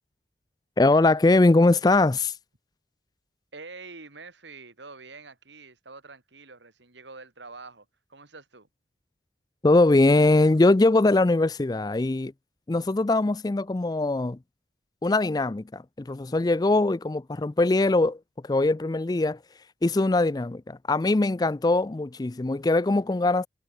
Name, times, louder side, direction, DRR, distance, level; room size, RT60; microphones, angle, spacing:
voice 1, 0.8-2.3 9.6-12.3 12.7-14.4 15.0-19.4 19.8-23.5, left 2 dB, 20° left, 0.4 m, -22 dB
voice 2, 3.5-8.7, right 3 dB, 80° right, 3.2 m, -46 dB
head